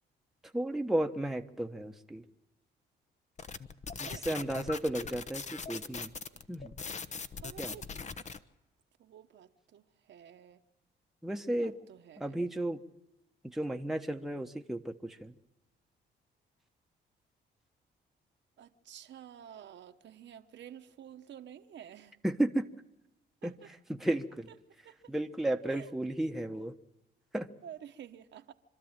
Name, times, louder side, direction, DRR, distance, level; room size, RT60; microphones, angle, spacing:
voice 1, 0.5-2.2 4.0-6.1 6.5-6.8 7.6-7.7 11.2-11.7 12.2-12.8 13.4-15.3 22.2-22.7 23.4-24.5 25.1-26.7 27.3-27.5, right 1 dB, ahead, 4 dB, 1.1 m, -33 dB
sound 1, 3.4-8.4, left 5 dB, 35° left, 0.9 m, -41 dB
voice 2, 7.3-7.9 9.0-10.6 11.6-12.4 18.6-22.2 23.4-23.7 24.8-25.1 25.7-25.9 27.6-28.5, right 9 dB, 65° right, 6 dB, 1.1 m, -50 dB
26.0 x 12.5 x 8.9 m, 0.99 s
cardioid pair, 90°, 20 cm